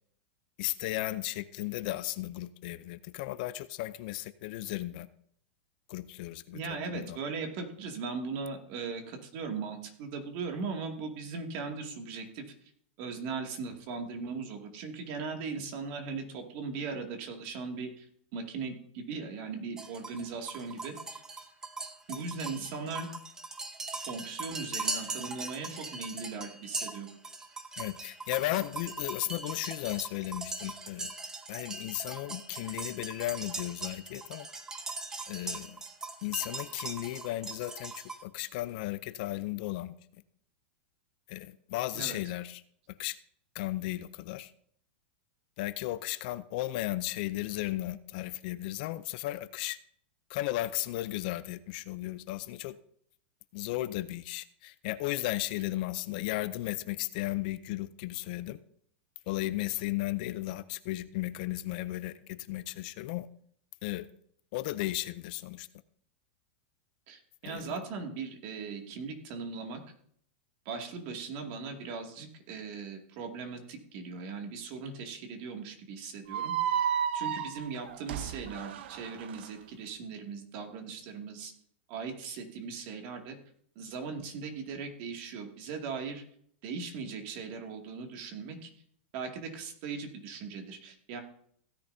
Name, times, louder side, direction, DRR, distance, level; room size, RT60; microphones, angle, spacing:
voice 1, 0.6-5.1 5.9-7.2 27.8-31.1 31.5-34.5 35.3-35.8 36.2-39.9 41.3-42.6 42.9-43.2 43.5-44.5 45.6-49.8 50.3-52.8 53.5-58.6 59.3-63.3 63.8-64.1 64.5-65.7 67.5-67.6, left 17 dB, 50° left, 14 dB, 0.5 m, -35 dB
voice 2, 6.5-12.4 13.0-18.1 18.3-21.2 22.1-23.1 24.0-27.1 41.9-42.2 67.1-69.8 70.7-81.5 81.9-83.4 83.8-86.2 86.6-88.7 89.1-91.2, right 4 dB, 45° right, 3 dB, 2.3 m, -39 dB
sound 1, 19.8-38.2, right 3 dB, 10° right, 0.8 m, -40 dB
sound 2, 76.3-79.5, right 9 dB, 65° right, 0.7 m, -32 dB
16.0 x 10.0 x 2.7 m, 0.64 s
supercardioid pair, 160°, 6 cm